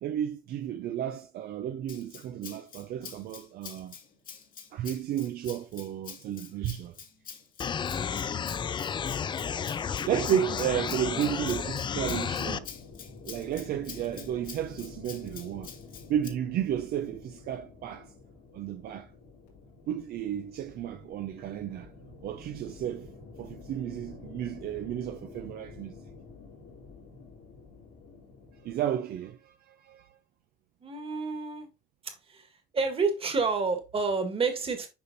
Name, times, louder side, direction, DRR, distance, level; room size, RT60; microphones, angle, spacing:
voice 1, 0.0-4.0 4.7-7.0 8.1-8.3 10.1-12.7 13.2-15.7 16.1-18.1 18.5-19.1 19.9-21.9 22.2-23.1 23.4-25.9 28.6-30.1, right 10 dB, 65° right, 0.6 m, -33 dB
Rattle (instrument), 1.9-16.3, left 7 dB, 55° left, 1.6 m, -47 dB
sound 1, 7.6-12.6, left 7 dB, 30° left, 0.4 m, -32 dB
sound 2, 10.6-28.8, left 4 dB, 90° left, 2.9 m, -49 dB
voice 2, 30.8-31.7 32.0-32.5 32.7-34.9, right 4 dB, 35° right, 1.7 m, -29 dB
6.9 x 5.2 x 2.6 m
cardioid pair, 110°, 17 cm